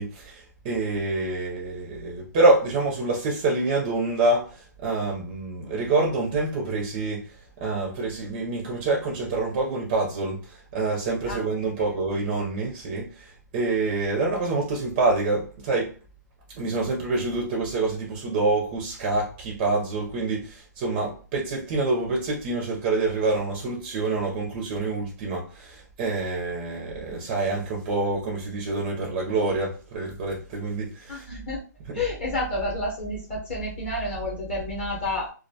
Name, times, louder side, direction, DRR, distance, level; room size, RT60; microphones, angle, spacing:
voice 1, 0.0-7.3 7.6-15.9 16.5-31.2 31.8-32.1, right 3 dB, 20° right, 0.4 m, -26 dB
voice 2, 31.1-31.6 31.9-35.3, left 1 dB, 35° left, 0.8 m, -29 dB
2.3 x 2.1 x 2.6 m
hypercardioid pair, 170°, 10 cm